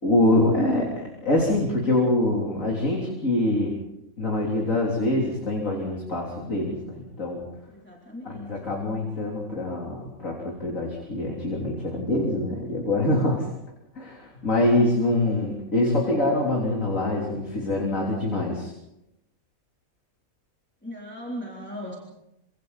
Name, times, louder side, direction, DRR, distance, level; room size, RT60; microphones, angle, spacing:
voice 1, 0.0-0.9 1.2-3.8 4.2-7.4 8.3-13.4 14.0-18.7, left 1 dB, 60° left, -2 dB, 4.0 m, -24 dB
voice 2, 7.7-8.7 20.8-22.0, equal, 5° left, -4 dB, 3.5 m, -38 dB
28.0 x 26.5 x 4.2 m, 0.87 s
omnidirectional pair, 1.5 m